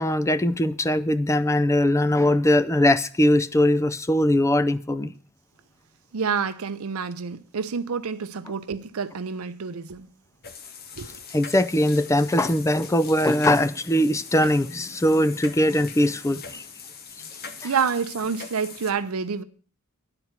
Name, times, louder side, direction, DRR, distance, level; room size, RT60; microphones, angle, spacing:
voice 1, 0.0-5.1 11.3-16.6, left 1 dB, 15° left, 0.4 m, -21 dB
voice 2, 6.1-10.1 11.0-11.2 17.6-19.4, right 6 dB, 70° right, 0.6 m, -28 dB
sound 1, 10.4-18.9, left 6 dB, 45° left, 1.0 m, -41 dB
10.5 x 4.5 x 8.0 m
head